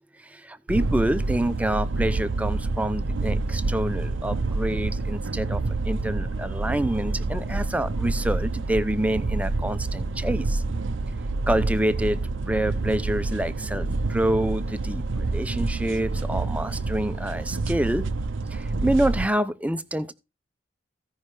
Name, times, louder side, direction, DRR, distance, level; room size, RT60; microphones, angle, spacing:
voice 1, 0.2-10.6 11.5-18.0 18.5-20.1, right 1 dB, 5° right, 0.6 m, -27 dB
sound 1, 0.7-19.3, right 3 dB, 85° right, 0.6 m, -28 dB
15.5 x 5.5 x 4.9 m
head